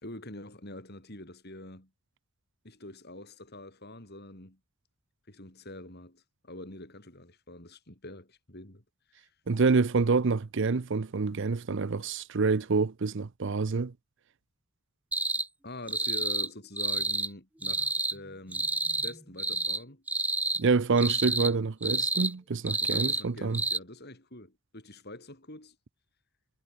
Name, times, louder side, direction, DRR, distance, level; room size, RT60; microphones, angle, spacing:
voice 1, 0.0-1.9 2.6-4.6 5.3-8.8 9.2-9.3 15.6-18.7 19.0-20.0 22.8-25.8, left 1 dB, 45° left, 5.4 m, -45 dB
voice 2, 9.5-13.9 20.6-23.6, right 4 dB, 55° right, 0.6 m, -27 dB
sound 1, 15.1-15.5 15.9-16.5 16.8-17.3 17.6-18.1 18.5-19.1 19.4-19.8 20.1-20.6 21.0-21.5 21.8-22.3 22.7-23.2 23.5-23.8, right 2 dB, 5° right, 0.6 m, -29 dB
head